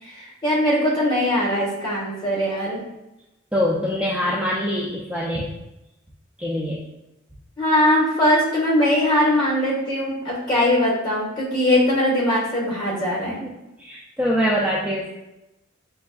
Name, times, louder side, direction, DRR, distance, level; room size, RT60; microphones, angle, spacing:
voice 1, 0.0-2.8 7.6-13.4, left 1 dB, 20° left, -4 dB, 1.5 m, -21 dB
voice 2, 3.5-5.5 6.4-6.8 13.4-13.5 13.8-15.2, equal, 5° right, -5 dB, 0.4 m, -24 dB
6.1 x 2.4 x 2.3 m, 0.95 s
head